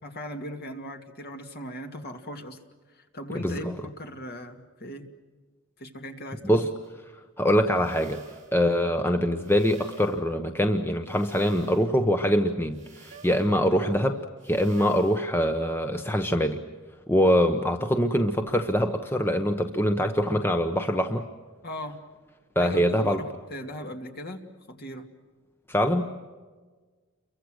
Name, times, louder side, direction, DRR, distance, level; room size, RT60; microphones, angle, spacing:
voice 1, 0.0-2.6 2.9-5.1 5.8-6.7 21.6-22.0 22.6-24.4 24.7-25.1, equal, 50° left, 4 dB, 2.5 m, -38 dB
voice 2, 3.4-3.7 6.4-6.7 7.4-8.2 8.5-16.6 17.1-21.2 22.5-23.2 25.7-26.0, equal, 10° left, 6 dB, 1.0 m, -24 dB
sound 1, 6.8-6.9 7.7-8.6 9.4-10.2 11.1-11.9 12.7-13.6 14.4-15.2, right 5 dB, 35° right, 4.0 m, -50 dB
30.0 x 23.5 x 6.4 m, 1.4 s
head